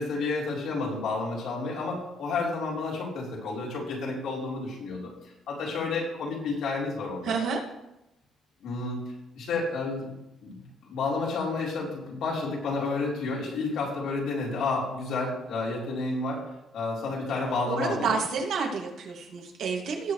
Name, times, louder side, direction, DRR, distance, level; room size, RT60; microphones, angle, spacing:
voice 1, 0.0-5.1 5.5-7.4 8.6-9.0 9.4-16.4 16.7-18.2, left 3 dB, 75° left, -4 dB, 3.9 m, -31 dB
voice 2, 7.2-7.6 17.7-20.1, right 5 dB, 70° right, 0 dB, 2.4 m, -29 dB
18.5 x 6.8 x 3.3 m, 0.89 s
cardioid pair, 140°, 0 cm